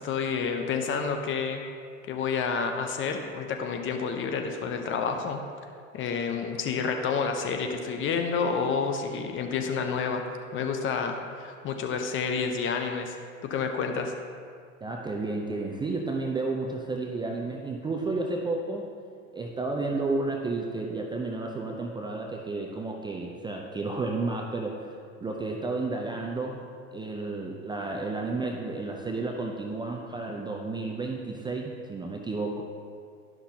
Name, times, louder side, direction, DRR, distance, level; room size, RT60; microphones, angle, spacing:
voice 1, 0.0-1.6 2.1-5.4 5.9-10.2 10.5-13.1 13.4-14.1, left 5 dB, 30° left, 5 dB, 0.8 m, -29 dB
voice 2, 14.8-18.9 19.3-24.9 25.2-32.6, right 3 dB, 10° right, 0 dB, 0.5 m, -32 dB
11.5 x 6.0 x 2.8 m, 2.2 s
hypercardioid pair, 100°, 39 cm